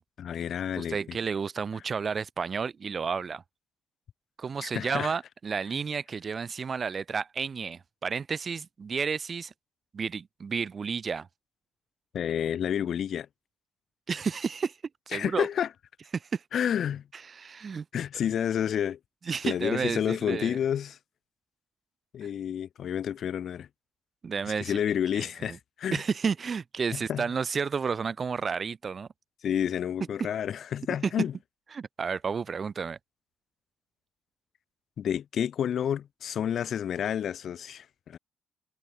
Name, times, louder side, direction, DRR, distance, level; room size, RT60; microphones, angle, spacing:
voice 1, 0.2-1.2 4.6-5.1 12.1-13.3 15.1-15.7 16.5-17.0 17.9-19.0 19.4-21.0 22.1-23.7 24.6-26.0 26.9-27.3 29.4-31.3 35.0-38.2, left 9 dB, 60° left, 6.9 m, -30 dB
voice 2, 0.8-3.4 4.4-9.5 9.9-11.3 14.1-14.7 15.1-15.5 16.1-16.4 17.3-17.8 19.3-20.6 24.2-24.8 25.1-25.6 25.9-29.1 30.2-30.3 31.7-33.0, right 5 dB, 40° right, 3.3 m, -31 dB
cardioid pair, 90°, 0 cm